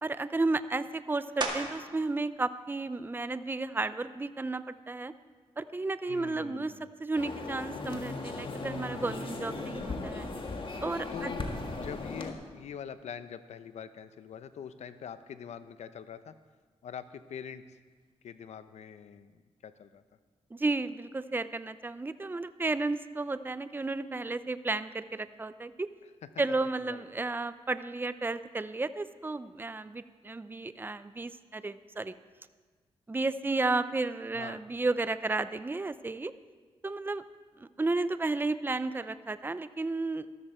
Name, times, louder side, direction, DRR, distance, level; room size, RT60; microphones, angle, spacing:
voice 1, 0.0-5.1 5.6-6.7 7.0-10.3 10.8-11.3 20.5-25.9 26.4-32.1 33.1-36.3 36.8-37.2 37.6-40.3, right 3 dB, 20° right, 13 dB, 0.5 m, -33 dB
sound 1, 1.4-2.0 2.6-7.0 7.5-12.7 12.9-18.6, right 3 dB, 40° right, 2.0 m, -45 dB
voice 2, 6.1-6.9 11.1-11.4 11.7-16.3 16.8-17.8 18.2-20.0 26.9-27.0 34.3-34.6, left 7 dB, 80° left, 12 dB, 0.7 m, -44 dB
sound 2, 7.1-12.3, left 3 dB, 50° left, 1.7 m, -37 dB
13.5 x 13.5 x 4.4 m, 1.4 s
cardioid pair, 70°, 11 cm